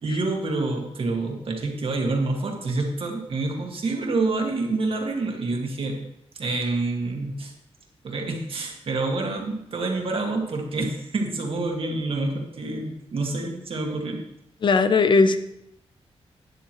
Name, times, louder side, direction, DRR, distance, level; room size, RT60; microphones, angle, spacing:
voice 1, 0.0-6.1 6.4-7.5 8.0-14.2, right 3 dB, 55° right, 2 dB, 1.8 m, -27 dB
voice 2, 14.6-15.4, left 4 dB, 45° left, 11 dB, 0.7 m, -18 dB
12.0 x 9.9 x 3.1 m, 0.78 s
wide cardioid pair, 150°, 11 cm